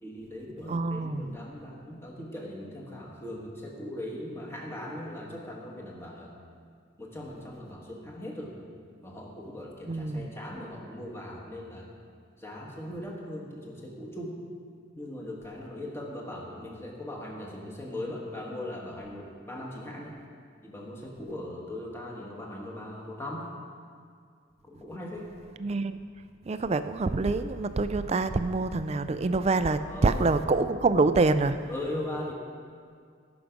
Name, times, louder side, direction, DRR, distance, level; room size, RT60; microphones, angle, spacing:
voice 1, 0.0-6.3 7.0-8.6 9.0-11.9 12.4-14.4 14.9-20.2 20.6-23.5 24.6-25.3 29.8-30.3 31.7-32.3, left 1 dB, 15° left, -2 dB, 1.5 m, -39 dB
voice 2, 0.7-1.4 9.9-10.3 25.6-26.0 26.4-31.6, right 3 dB, 35° right, 11 dB, 0.4 m, -26 dB
17.5 x 6.0 x 5.2 m, 2.2 s
head